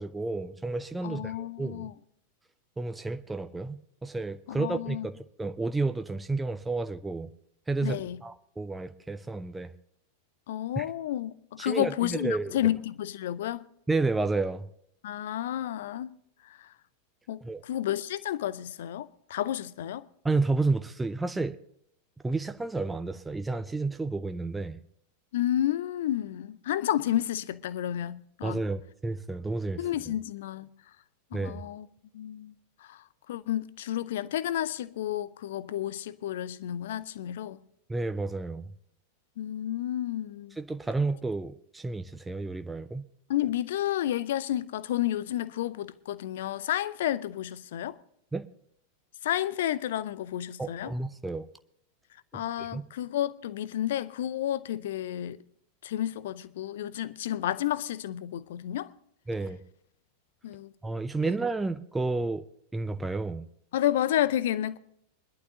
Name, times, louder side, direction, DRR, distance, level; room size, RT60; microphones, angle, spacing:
voice 1, 0.0-1.9 2.8-7.3 7.7-9.7 10.8-10.9 11.6-12.6 13.9-14.7 17.4-17.6 20.2-21.6 22.2-24.8 28.4-30.1 31.3-31.6 37.9-38.7 40.6-43.1 48.3-48.5 50.6-51.5 52.3-52.8 59.3-59.6 60.8-62.5 62.7-63.4, right 3 dB, 10° right, 0.5 m, -31 dB
voice 2, 1.0-1.9 4.5-5.1 7.8-8.2 10.5-13.6 15.0-16.1 16.4-16.7 17.3-17.4 17.7-20.1 25.3-28.6 29.8-30.7 31.3-31.9 32.1-32.5 32.8-37.6 39.4-40.6 43.3-48.0 49.2-50.9 52.3-55.4 55.8-58.9 60.4-60.7 61.2-61.3 63.7-64.8, left 12 dB, 55° left, 0.5 m, -31 dB
23.0 x 11.5 x 2.9 m
figure-of-eight pair, 90°, 0 cm